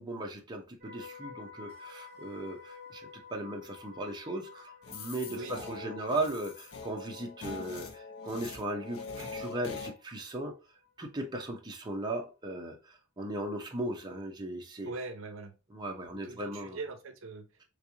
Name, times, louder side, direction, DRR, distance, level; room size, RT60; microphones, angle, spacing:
voice 1, 0.0-10.5 11.0-14.9 15.7-16.8, right 1 dB, 20° right, 0.8 m, -37 dB
sound 1, 0.8-10.9 11.2-11.5, left 5 dB, 50° right, 1.2 m, -52 dB
sound 2, 4.8-9.9, left 4 dB, 75° left, 0.7 m, -43 dB
voice 2, 5.3-6.0 14.9-15.5 16.2-17.5, right 3 dB, 65° right, 0.6 m, -42 dB
3.4 x 3.3 x 2.7 m
head